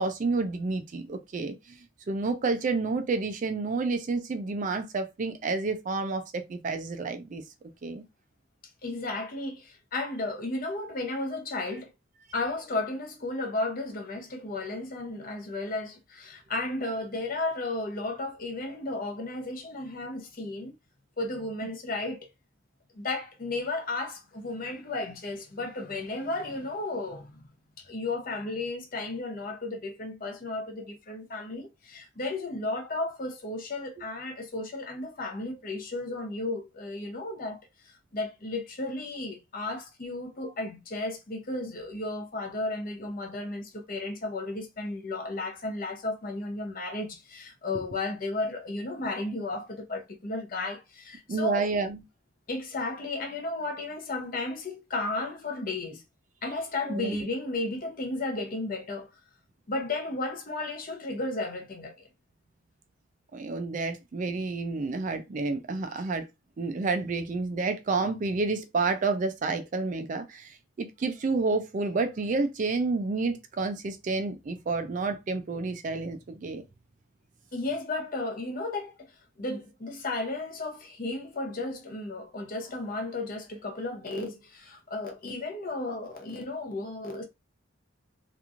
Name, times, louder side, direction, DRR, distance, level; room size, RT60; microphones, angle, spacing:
voice 1, 0.0-1.8 2.1-7.4 7.8-8.0 47.7-47.8 51.3-52.0 56.9-57.3 63.3-66.3 66.6-76.6, right 3 dB, 40° right, 0.3 m, -30 dB
voice 2, 8.8-11.9 12.3-20.7 21.2-22.3 22.9-37.6 37.8-51.7 52.5-56.0 56.4-59.1 59.7-62.1 77.5-79.1 79.4-87.2, left 2 dB, 45° left, 0.7 m, -34 dB
2.9 x 2.5 x 2.4 m
head